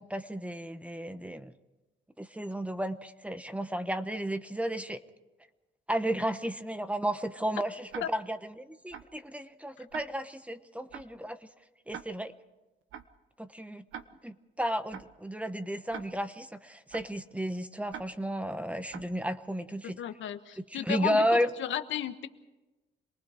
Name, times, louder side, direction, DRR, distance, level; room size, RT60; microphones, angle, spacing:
voice 1, 0.0-1.5 2.2-5.0 5.9-11.4 11.9-12.3 13.4-13.9 14.2-20.0 20.6-21.5, equal, 5° right, 11 dB, 1.1 m, -33 dB
Tick-tock, 7.9-8.0 8.9-9.0 9.9-10.0 10.9-11.0 11.9-12.0 12.9-13.0 13.9-14.0 14.9-15.0 15.9-16.0 16.9-17.0 17.9-18.0 18.9-19.0, right 9 dB, 80° right, 1.2 m, -41 dB
voice 2, 20.0-22.3, left 11 dB, 75° left, 9 dB, 1.3 m, -34 dB
27.0 x 19.5 x 5.0 m, 1.1 s
cardioid pair, 90°, 20 cm